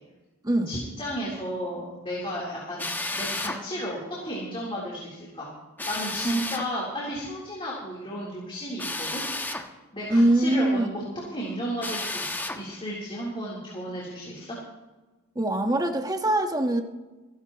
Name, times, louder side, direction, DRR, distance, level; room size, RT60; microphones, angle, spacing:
voice 1, 0.7-2.9 3.1-5.5 5.9-9.2 9.9-11.0 11.3-14.6, equal, 25° left, -5 dB, 3.6 m, -33 dB
Drill, 2.8-3.6 5.8-6.7 8.8-9.7 11.8-12.6, left 2 dB, 10° left, 1.1 m, -32 dB
voice 2, 10.1-10.9 15.3-16.8, right 1 dB, 20° right, 5 dB, 1.3 m, -23 dB
29.0 x 11.5 x 3.0 m, 1.1 s
head